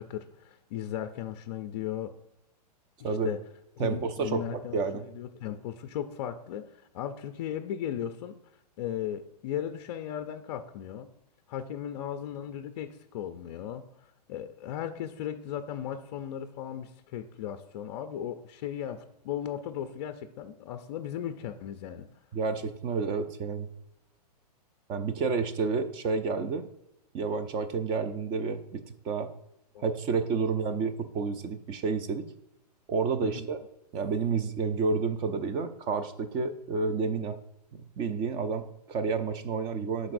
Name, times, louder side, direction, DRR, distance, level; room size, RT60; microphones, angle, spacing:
voice 1, 0.0-2.1 3.0-3.4 3.8-8.4 8.8-11.1 11.5-13.8 14.3-22.1 29.7-29.8 33.2-33.5, left 10 dB, 40° left, 8 dB, 0.4 m, -36 dB
voice 2, 3.8-5.0 22.3-23.7 24.9-26.7 27.1-29.3 29.8-32.2 32.9-33.6 33.9-37.4 38.0-40.1, right 4 dB, 20° right, 11 dB, 0.4 m, -30 dB
10.5 x 4.0 x 2.6 m, 0.86 s
hypercardioid pair, 150°, 21 cm